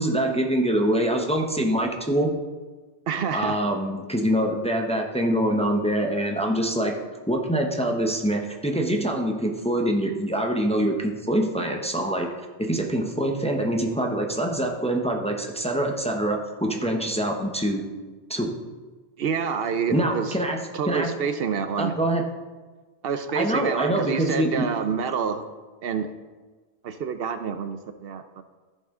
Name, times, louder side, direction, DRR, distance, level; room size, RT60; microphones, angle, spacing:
voice 1, 0.0-2.3 3.3-7.0 7.3-12.3 12.6-17.8 18.3-18.5 19.9-20.6 20.9-21.1 21.8-22.2 23.3-24.7, right 1 dB, 5° left, 2 dB, 0.8 m, -24 dB
voice 2, 3.1-3.6 19.2-20.4 20.7-22.0 23.0-25.4 25.8-26.1 26.8-28.4, right 6 dB, 70° right, 10 dB, 0.8 m, -27 dB
14.0 x 5.5 x 3.7 m, 1.3 s
omnidirectional pair, 1.1 m